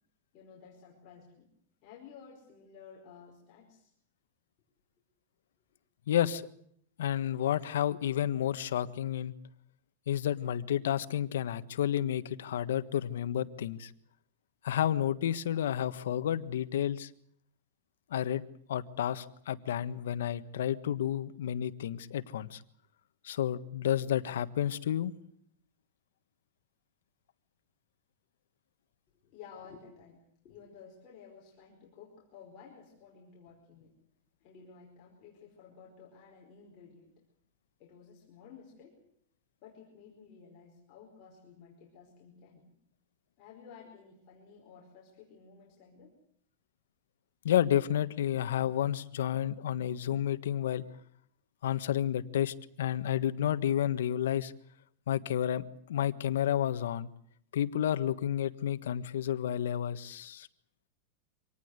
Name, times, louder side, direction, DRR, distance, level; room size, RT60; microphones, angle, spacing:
voice 1, 0.3-1.5 1.8-3.9 29.1-33.9 34.4-37.2 37.8-39.0 39.6-42.7 43.4-46.2, left 6 dB, 30° left, -3 dB, 5.2 m, -54 dB
voice 2, 6.1-6.4 7.0-9.3 10.1-13.9 14.6-17.1 18.1-18.4 18.7-22.6 23.2-25.1 47.4-50.8 51.6-54.5 55.1-57.1 57.5-60.5, left 10 dB, 85° left, 12 dB, 1.5 m, -31 dB
25.5 x 19.0 x 8.1 m, 0.68 s
supercardioid pair, 175°, 0 cm